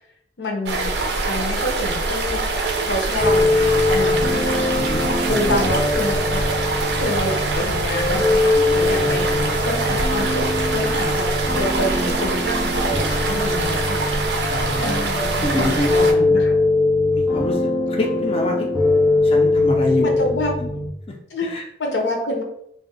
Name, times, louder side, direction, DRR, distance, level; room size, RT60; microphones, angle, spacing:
voice 1, 0.4-0.9 1.3-2.4 2.9-4.6 5.3-6.5 7.0-11.3 11.5-14.0 14.7-16.5 20.0-20.5 21.3-21.5 21.8-22.4, left 1 dB, 90° left, 2 dB, 0.7 m, -27 dB
sound 1, 0.7-16.1, right 3 dB, 75° right, 0.4 m, -24 dB
sound 2, 3.2-20.9, left 2 dB, 5° right, 0.7 m, -21 dB
voice 2, 4.5-5.6 9.0-10.0 14.5-15.1 15.4-16.4 17.1-18.7 19.2-20.7 21.1-21.6, left 1 dB, 30° left, 0 dB, 0.4 m, -27 dB
2.5 x 2.1 x 3.8 m, 0.73 s
head